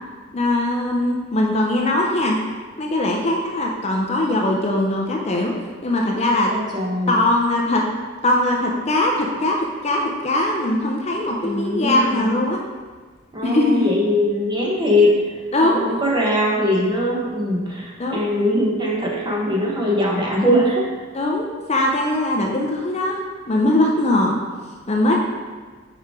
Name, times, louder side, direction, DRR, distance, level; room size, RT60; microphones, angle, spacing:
voice 1, 0.3-2.4 2.8-5.5 5.8-6.5 7.1-7.8 8.2-9.6 9.8-12.6 13.4-13.9 15.5-15.8 18.0-18.2 21.1-23.2 23.5-24.4 24.9-25.2, left 1 dB, 30° left, 0 dB, 0.5 m, -20 dB
voice 2, 6.5-7.2 11.4-12.4 13.3-15.1 15.6-21.0, left 1 dB, 20° right, -3 dB, 1.0 m, -21 dB
4.9 x 4.6 x 4.7 m, 1.4 s
head